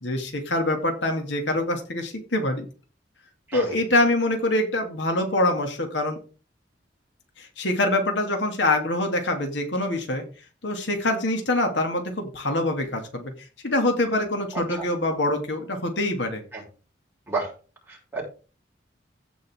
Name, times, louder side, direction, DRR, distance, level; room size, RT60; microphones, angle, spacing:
voice 1, 0.0-2.6 3.5-6.2 7.4-10.2 10.6-13.3 13.6-16.4, left 1 dB, 75° left, 4 dB, 2.5 m, -25 dB
voice 2, 17.9-18.2, right 3 dB, 15° right, -4 dB, 5.3 m, -30 dB
16.0 x 5.5 x 3.7 m, 0.35 s
head